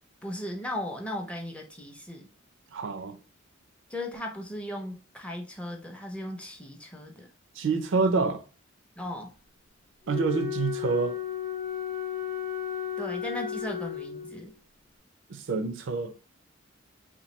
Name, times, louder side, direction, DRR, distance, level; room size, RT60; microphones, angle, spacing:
voice 1, 0.2-2.3 3.9-7.3 9.0-9.3 13.0-14.5, left 1 dB, 5° left, 0.5 m, -37 dB
voice 2, 2.7-3.2 7.6-8.4 10.1-11.1 15.3-16.1, right 4 dB, 65° right, 0.4 m, -27 dB
Wind instrument woodwind instrument, 10.1-14.5, left 10 dB, 45° left, 0.6 m, -34 dB
2.9 x 2.3 x 4.2 m
head